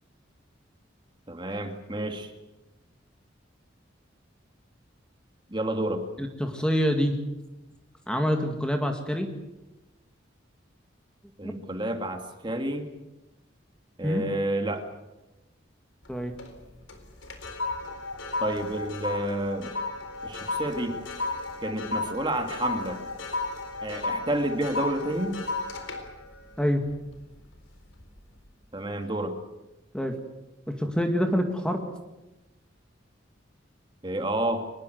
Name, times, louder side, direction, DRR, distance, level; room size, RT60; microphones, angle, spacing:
voice 1, 1.3-2.3 5.5-6.0 11.4-12.9 14.0-14.8 18.4-19.7 20.2-21.0 21.6-23.0 23.8-25.4 28.7-29.4 34.0-34.6, right 1 dB, 25° right, 5 dB, 2.3 m, -30 dB
voice 2, 6.2-7.2 8.1-9.3 11.4-11.5 14.0-14.3 16.1-16.3 26.6-26.8 29.9-30.1 30.7-31.8, equal, 5° left, 4 dB, 2.0 m, -26 dB
sound 1, 16.1-16.6 16.9-27.5 27.9-28.2, left 3 dB, 85° left, 4.1 m, -34 dB
24.0 x 21.0 x 8.0 m, 0.99 s
head